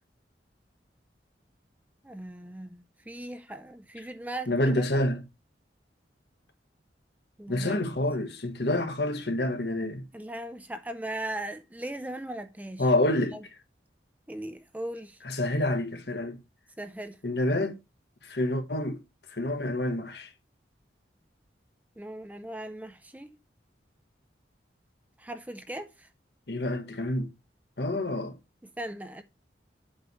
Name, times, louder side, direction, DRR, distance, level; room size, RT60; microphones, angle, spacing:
voice 1, 2.0-4.9 7.4-7.8 10.1-12.9 13.2-13.4 14.3-15.2 16.8-17.2 22.0-23.4 25.2-26.1 28.6-29.2, right 1 dB, 10° right, 0.4 m, -38 dB
voice 2, 4.5-5.2 7.5-10.0 12.8-13.4 15.2-16.4 17.2-17.7 18.2-19.0 19.3-20.3 26.5-27.3 27.8-28.3, left 1 dB, 65° left, 1.3 m, -28 dB
8.0 x 3.2 x 6.2 m
head